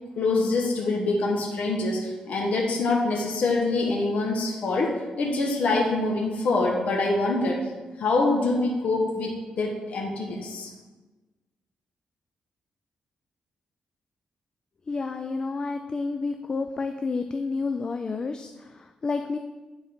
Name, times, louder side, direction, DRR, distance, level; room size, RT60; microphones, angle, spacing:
voice 1, 0.1-7.6 8.0-10.7, left 3 dB, 65° left, -1 dB, 1.2 m, -25 dB
voice 2, 14.9-19.4, left 4 dB, 30° left, 7 dB, 0.3 m, -30 dB
9.0 x 4.0 x 5.1 m, 1.2 s
cardioid pair, 125°, 3 cm